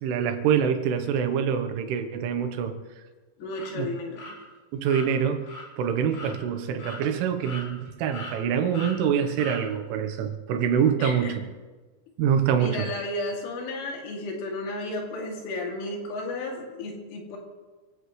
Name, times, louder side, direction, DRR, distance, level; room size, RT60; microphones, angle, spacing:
voice 1, 0.0-2.8 3.8-3.9 4.7-5.4 5.8-11.4 12.2-12.9, right 8 dB, 85° right, 7 dB, 3.7 m, -25 dB
voice 2, 3.4-4.4 6.3-6.7 11.0-11.3 12.6-17.4, left 2 dB, 85° left, -1 dB, 5.2 m, -33 dB
sound 1, 3.5-3.7 4.2-4.3 4.8-5.1 5.5-5.6 6.1-6.4 6.8-7.0 7.4-7.9 8.1-8.4 8.7-9.0 9.4-9.6, left 2 dB, 60° left, 5.8 m, -39 dB
25.0 x 16.5 x 3.3 m, 1.3 s
omnidirectional pair, 5.5 m